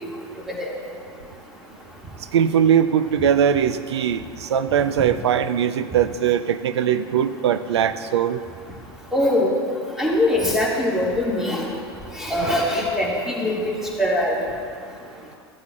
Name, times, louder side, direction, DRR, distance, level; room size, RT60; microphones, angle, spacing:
voice 1, 2.3-8.4, right 8 dB, 90° right, 12 dB, 0.5 m, -20 dB
voice 2, 9.1-9.5 10.0-11.7 12.2-13.7 14.0-14.4, left 1 dB, 5° right, -4 dB, 2.2 m, -22 dB
15.0 x 8.3 x 2.5 m, 2.2 s
hypercardioid pair, 105°, 14 cm